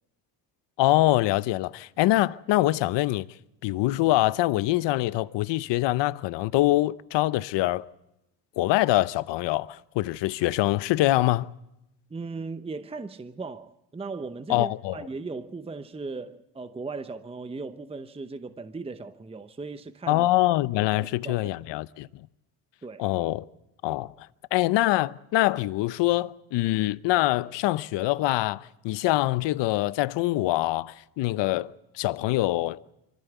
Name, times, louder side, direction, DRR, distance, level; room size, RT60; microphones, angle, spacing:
voice 1, 0.8-3.3 3.6-7.9 8.6-11.5 14.5-15.0 20.1-22.1 23.0-23.5 23.8-32.8, left 17 dB, 70° left, 0.8 m, -24 dB
voice 2, 12.1-20.3 21.0-21.5 22.8-23.0, right 3 dB, 15° right, 0.8 m, -37 dB
24.5 x 16.0 x 8.1 m
cardioid pair, 95°, 45 cm